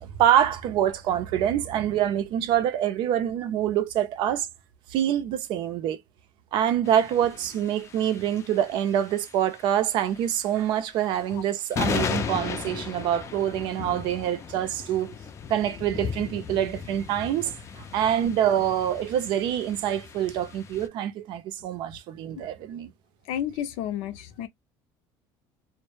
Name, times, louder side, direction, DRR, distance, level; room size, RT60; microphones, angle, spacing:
voice 1, 0.0-4.5 4.9-6.0 6.5-15.1 15.5-22.9, right 10 dB, 65° right, 0.5 m, -25 dB
sound 1, 6.8-20.9, left 7 dB, 30° left, 0.4 m, -36 dB
voice 2, 23.3-24.5, left 10 dB, 85° left, 0.5 m, -32 dB
2.1 x 2.0 x 3.0 m
cardioid pair, 130°, 9 cm